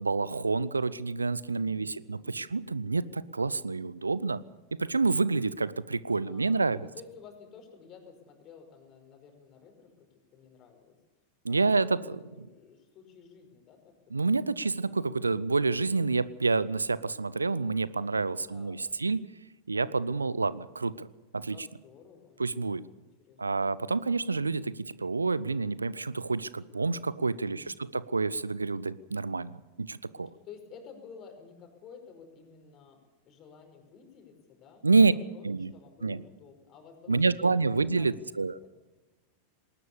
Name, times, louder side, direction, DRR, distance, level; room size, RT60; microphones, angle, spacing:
voice 1, 0.0-4.4 4.8-6.9 11.4-12.0 14.1-19.2 19.7-21.1 21.3-21.6 22.4-22.8 23.4-30.3 34.8-35.1 35.4-35.7 36.0-36.2 37.1-38.6, right 3 dB, 80° right, 20 dB, 0.6 m, -28 dB
voice 2, 1.4-2.5 6.2-9.9 10.3-11.0 11.5-14.1 14.7-15.1 18.4-19.2 21.5-23.7 27.3-27.8 30.4-33.0 33.2-38.7, left 6 dB, 35° left, 5 dB, 5.2 m, -53 dB
20.5 x 19.5 x 6.9 m, 1.2 s
figure-of-eight pair, 90°, 0 cm